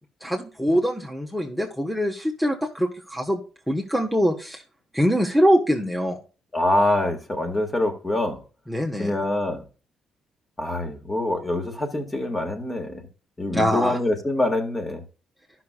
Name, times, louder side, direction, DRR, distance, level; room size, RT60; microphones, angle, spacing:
voice 1, 0.2-4.6 4.9-6.2 8.7-9.2 13.5-14.0, equal, ahead, 1.3 m, -23 dB
voice 2, 6.5-8.4 9.0-9.6 10.6-13.0 13.4-15.0, left 1 dB, 25° left, 2.0 m, -25 dB
12.0 x 6.1 x 2.4 m
hypercardioid pair, 50°, 0 cm